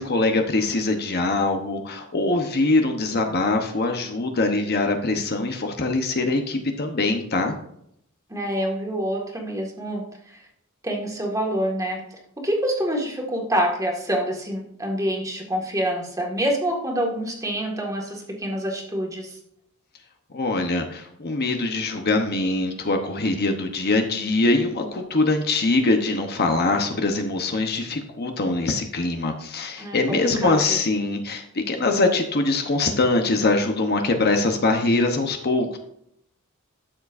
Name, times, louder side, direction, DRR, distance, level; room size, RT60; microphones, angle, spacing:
voice 1, 0.0-7.5 20.3-35.8, left 2 dB, 45° left, 4 dB, 1.0 m, -23 dB
voice 2, 8.3-10.4 10.8-12.0 12.4-19.4 29.8-30.8, equal, 15° right, 0 dB, 1.9 m, -26 dB
12.5 x 7.2 x 2.6 m, 0.71 s
head